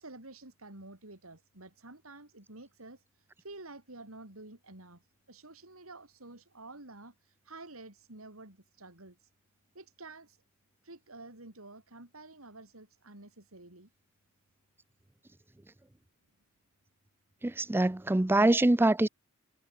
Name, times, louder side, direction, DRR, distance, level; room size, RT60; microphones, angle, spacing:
voice 1, 0.0-9.3 9.7-10.4 10.8-13.9, right 2 dB, 85° right, 4.9 m, -50 dB
voice 2, 17.4-19.1, right 1 dB, 10° right, 0.5 m, -24 dB
head